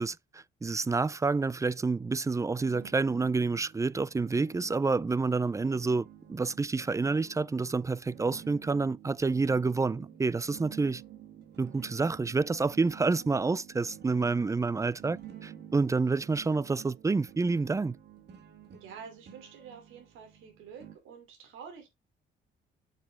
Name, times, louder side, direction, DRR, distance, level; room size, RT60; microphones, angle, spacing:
voice 1, 0.0-11.0 11.6-18.0, right 4 dB, 15° right, 0.4 m, -28 dB
sound 1, 2.5-21.0, right 9 dB, 60° right, 1.8 m, -50 dB
voice 2, 18.7-21.9, right 6 dB, 90° right, 2.9 m, -48 dB
7.5 x 6.7 x 3.5 m
cardioid pair, 90°, 20 cm